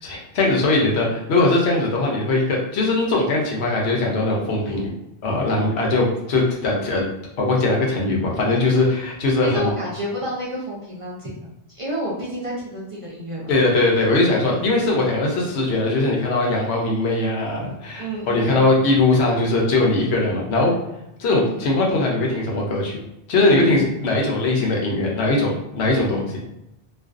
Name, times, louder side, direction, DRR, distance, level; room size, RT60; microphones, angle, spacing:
voice 1, 0.0-4.9 5.2-7.0 7.4-9.7 13.5-20.7 21.2-23.0 23.3-26.4, left 2 dB, 80° left, -1 dB, 0.9 m, -20 dB
voice 2, 9.4-11.5 11.7-13.5 14.5-14.6 18.0-18.7 21.5-21.6, equal, 40° right, -6 dB, 0.5 m, -30 dB
2.5 x 2.3 x 2.4 m, 0.87 s
omnidirectional pair, 1.1 m